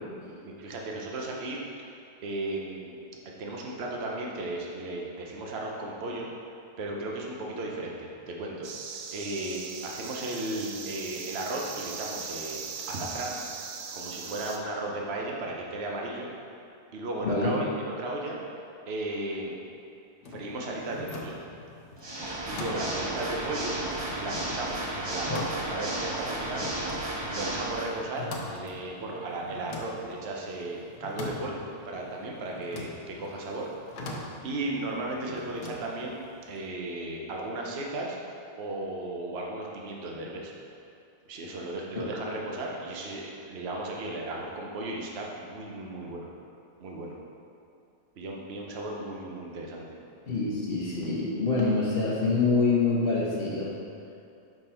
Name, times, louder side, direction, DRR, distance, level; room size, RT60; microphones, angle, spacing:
voice 1, 0.4-1.6 2.2-3.0 3.4-6.3 6.8-8.7 9.1-12.6 12.9-13.4 13.9-16.3 16.9-18.4 18.8-19.6 20.3-21.4 22.5-23.7 24.2-26.7 27.3-33.7 34.4-36.2 36.5-38.2 38.6-40.5 41.3-46.3 46.8-47.2 48.2-49.9, right 2 dB, 45° right, -1 dB, 1.0 m, -35 dB
sound 1, 8.6-14.6, right 5 dB, 85° right, 0.5 m, -39 dB
voice 2, 17.2-17.5 50.3-53.7, left 3 dB, 40° left, -6 dB, 1.1 m, -26 dB
sound 2, 20.2-36.7, left 2 dB, 80° left, 1.4 m, -43 dB
Water / Mechanisms, 22.0-28.0, right 1 dB, 30° right, 0.5 m, -33 dB
6.1 x 5.3 x 4.4 m, 2.6 s
omnidirectional pair, 1.7 m